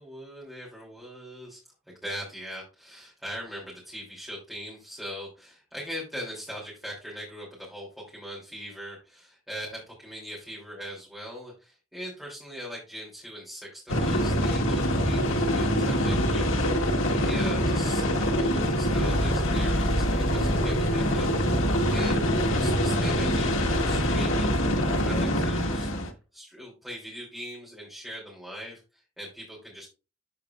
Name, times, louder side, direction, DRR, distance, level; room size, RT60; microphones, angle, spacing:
voice 1, 0.0-1.6 2.0-16.5 16.8-21.3 21.9-22.2 22.5-25.9 26.3-29.9, equal, ahead, -5 dB, 2.8 m, -41 dB
sound 1, 13.9-26.1, equal, 90° left, 1.3 m, -24 dB
12.5 x 4.7 x 2.4 m, 0.30 s
head